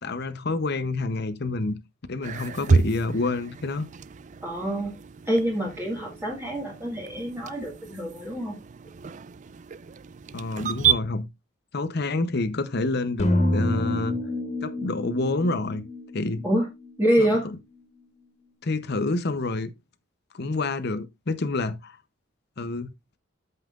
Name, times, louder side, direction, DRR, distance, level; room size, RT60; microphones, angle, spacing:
voice 1, 0.0-1.8 2.1-3.9 10.3-11.3 11.7-14.2 14.6-15.8 16.1-16.4 17.2-17.3 18.6-19.7 20.3-22.0 22.6-22.9, left 2 dB, 50° left, 0.8 m, -28 dB
sound 1, 2.2-11.0, right 5 dB, 35° right, 0.4 m, -30 dB
voice 2, 4.4-4.9 5.3-8.6 16.4-16.7 17.0-17.5, equal, 10° right, 1.8 m, -26 dB
sound 2, 13.2-17.3, left 1 dB, 35° left, 2.0 m, -28 dB
13.0 x 5.6 x 2.5 m
head